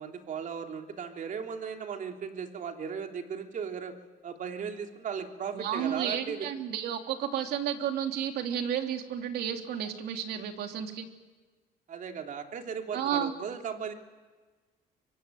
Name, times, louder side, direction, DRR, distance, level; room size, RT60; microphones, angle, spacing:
voice 1, 0.0-3.9 4.2-6.5 11.9-13.9, right 6 dB, 50° right, 4 dB, 3.1 m, -37 dB
voice 2, 5.5-11.1 12.9-13.3, right 9 dB, 75° right, 5 dB, 3.1 m, -32 dB
25.5 x 23.5 x 9.3 m, 1.3 s
cardioid pair, 110°, 17 cm